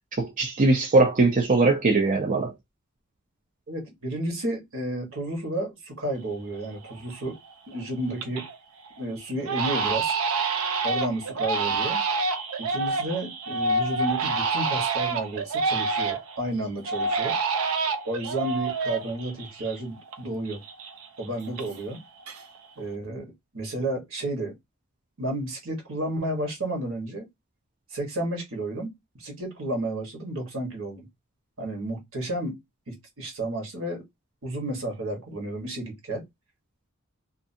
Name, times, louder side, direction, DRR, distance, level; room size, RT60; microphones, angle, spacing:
voice 1, 0.2-2.5, right 3 dB, 40° right, 0.5 m, -21 dB
voice 2, 3.7-7.4 7.7-8.5 9.0-10.1 10.8-12.0 12.6-17.4 18.0-20.6 21.2-22.0 22.8-24.5 25.2-27.3 27.9-31.1 31.6-32.6 32.9-34.0 34.4-36.2, right 1 dB, 70° right, 1.2 m, -32 dB
Crying sobbing, 6.3-6.4 6.9-7.3 7.7-8.6 8.9-9.0 9.5-16.4 16.9-20.2 20.5-22.0 22.2-22.8, right 4 dB, 85° right, 0.5 m, -28 dB
2.6 x 2.5 x 2.6 m
head